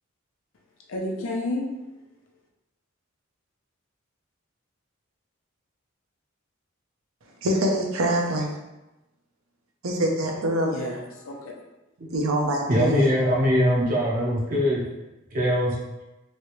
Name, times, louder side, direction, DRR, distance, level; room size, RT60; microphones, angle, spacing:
voice 1, 0.9-1.7 10.7-11.5 12.7-13.1, left 1 dB, 75° left, 0 dB, 0.6 m, -32 dB
voice 2, 7.4-8.5 9.8-11.0 12.1-13.1, right 1 dB, 90° right, 1 dB, 0.6 m, -24 dB
voice 3, 12.7-14.8 15.3-15.7, equal, 40° right, -4 dB, 0.6 m, -22 dB
3.1 x 2.8 x 3.0 m, 1.0 s
head